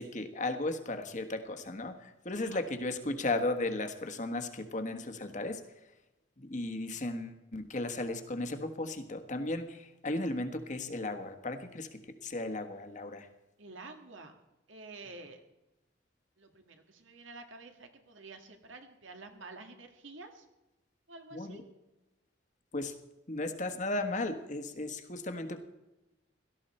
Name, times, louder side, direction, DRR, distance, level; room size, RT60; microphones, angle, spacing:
voice 1, 0.0-5.6 6.4-13.3 21.3-21.6 22.7-22.9 23.3-25.6, left 2 dB, 40° left, 7 dB, 1.3 m, -35 dB
voice 2, 13.6-14.3 14.7-15.4 16.4-20.5 21.1-21.6, right 3 dB, 80° right, 5 dB, 1.9 m, -49 dB
17.5 x 13.0 x 4.3 m, 1.0 s
head